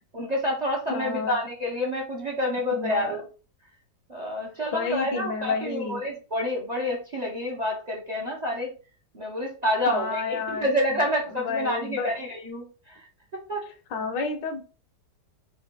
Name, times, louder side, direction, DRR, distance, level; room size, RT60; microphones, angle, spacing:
voice 1, 0.1-3.2 4.1-8.7 9.1-13.1 13.5-13.6, left 1 dB, 35° right, 0.7 m, -28 dB
voice 2, 0.9-1.4 2.8-3.2 4.7-6.0 9.9-11.0 11.3-12.1 13.9-14.6, left 4 dB, 80° left, 1.5 m, -30 dB
4.8 x 2.5 x 3.6 m
omnidirectional pair, 1.9 m